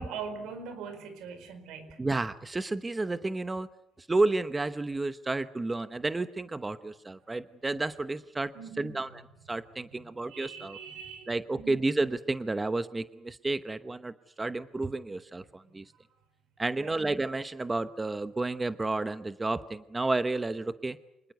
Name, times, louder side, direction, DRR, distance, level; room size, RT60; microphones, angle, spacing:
voice 1, 0.0-2.0 8.5-9.0 9.9-11.8 15.6-15.7 16.7-17.0, right 5 dB, 80° right, 10 dB, 4.6 m, -42 dB
voice 2, 2.0-3.7 4.0-8.5 8.8-9.1 9.5-10.8 11.3-15.8 16.6-21.0, right 2 dB, 15° right, 12 dB, 0.9 m, -31 dB
26.0 x 20.0 x 8.2 m, 0.84 s
cardioid pair, 105°, 0 cm